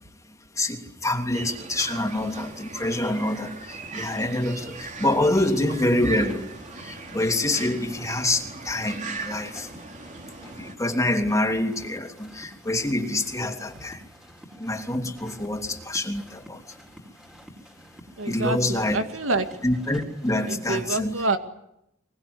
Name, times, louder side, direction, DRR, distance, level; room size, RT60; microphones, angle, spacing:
voice 1, 0.5-6.5 6.8-9.7 10.4-14.0 14.6-16.6 18.2-19.0 19.6-21.1, left 1 dB, 15° left, 4 dB, 3.0 m, -26 dB
sound 1, 1.3-10.7, right 3 dB, 40° right, 3.1 m, -38 dB
sound 2, 2.8-20.8, equal, 5° right, 4.2 m, -49 dB
voice 2, 18.2-19.5 20.5-21.4, right 3 dB, 80° right, 7 dB, 2.3 m, -27 dB
23.5 x 22.5 x 9.7 m, 0.81 s
head